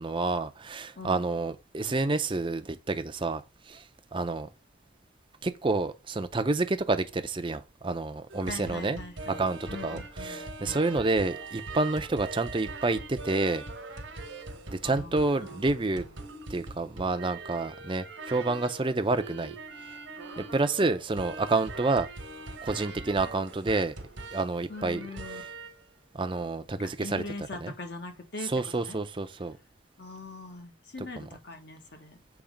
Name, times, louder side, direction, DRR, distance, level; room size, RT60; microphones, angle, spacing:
voice 1, 0.0-3.8 4.1-4.5 5.4-9.0 9.3-13.6 14.7-16.0 16.5-19.6 20.4-22.1 22.6-23.9 24.3-25.0 25.3-25.4 26.1-27.2 27.6-27.7 28.4-29.5 31.2-31.3, right 3 dB, 25° right, 0.5 m, -29 dB
sound 1, 8.3-25.8 26.2-26.5, right 3 dB, 70° right, 1.2 m, -42 dB
voice 2, 8.5-9.4 9.7-11.0 14.8-15.9 24.7-25.4 26.8-29.0 30.0-32.2, left 3 dB, 60° left, 1.2 m, -42 dB
7.2 x 3.1 x 5.0 m
head